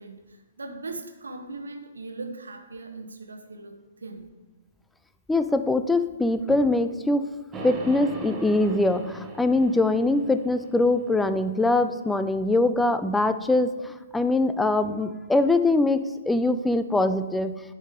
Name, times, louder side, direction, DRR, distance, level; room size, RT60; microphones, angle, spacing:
voice 1, 0.0-4.3, right 3 dB, 70° right, 4 dB, 1.0 m, -39 dB
voice 2, 5.3-7.3 7.6-17.6, left 2 dB, 5° left, 10 dB, 0.3 m, -23 dB
sound 1, 7.5-11.6, right 2 dB, 15° right, 0.9 m, -39 dB
10.0 x 5.3 x 3.7 m, 1.3 s
figure-of-eight pair, 125°, 0 cm